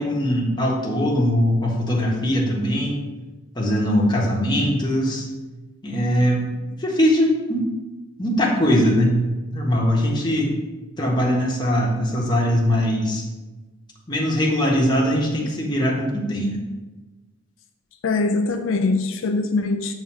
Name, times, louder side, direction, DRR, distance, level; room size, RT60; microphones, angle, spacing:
voice 1, 0.0-3.0 3.5-5.3 5.8-6.5 6.8-7.7 8.2-9.2 9.5-10.5 11.0-13.3 14.1-16.6, equal, 20° left, 1.4 m, -21 dB
voice 2, 18.0-19.9, left 3 dB, 75° left, 0.5 m, -22 dB
7.1 x 4.0 x 6.0 m
head